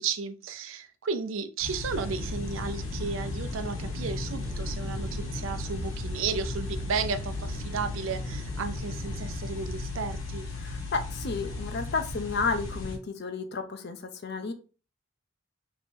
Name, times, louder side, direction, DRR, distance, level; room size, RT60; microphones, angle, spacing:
voice 1, 0.0-10.5, right 5 dB, 80° right, 0.5 m, -33 dB
sound 1, 1.6-13.0, left 3 dB, 85° left, 1.2 m, -36 dB
Aircraft, 1.9-11.3, equal, 30° right, 0.7 m, -39 dB
voice 2, 10.5-14.5, left 4 dB, 55° left, 0.5 m, -32 dB
3.2 x 2.8 x 4.3 m
head